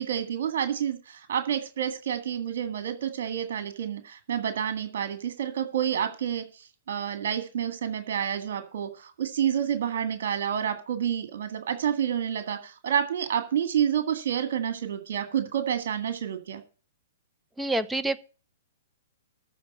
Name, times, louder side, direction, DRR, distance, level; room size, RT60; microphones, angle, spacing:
voice 1, 0.0-16.6, right 9 dB, 65° right, 1.9 m, -29 dB
voice 2, 17.6-18.2, right 1 dB, 5° right, 0.9 m, -27 dB
14.0 x 4.9 x 8.4 m
hypercardioid pair, 125°, 0 cm